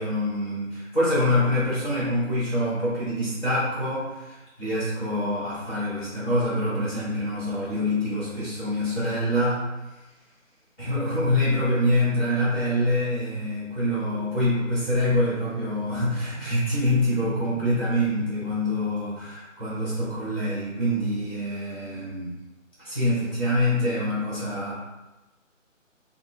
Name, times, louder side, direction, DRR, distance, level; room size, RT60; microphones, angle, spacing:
voice 1, 0.0-9.7 10.8-22.3 22.8-24.7, left 1 dB, 10° left, -9 dB, 1.1 m, -25 dB
4.1 x 2.3 x 3.4 m, 1.0 s
figure-of-eight pair, 150°, 39 cm